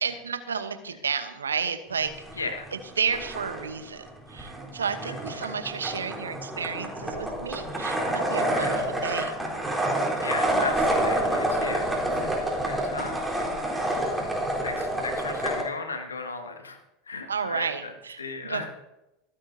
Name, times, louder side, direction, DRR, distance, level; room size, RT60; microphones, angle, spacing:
voice 1, 0.0-2.5 3.0-8.8 9.0-9.3 17.3-18.7, right 6 dB, 85° right, 10 dB, 1.0 m, -31 dB
sound 1, 2.1-2.8 3.1-15.6, right 1 dB, 5° right, 3.9 m, -28 dB
voice 2, 5.0-5.6 8.5-8.7 10.2-13.7 14.0-16.8 17.1-17.9 18.2-18.7, left 3 dB, 85° left, 5 dB, 1.7 m, -36 dB
25.5 x 8.6 x 2.8 m, 0.91 s
figure-of-eight pair, 80°, 0 cm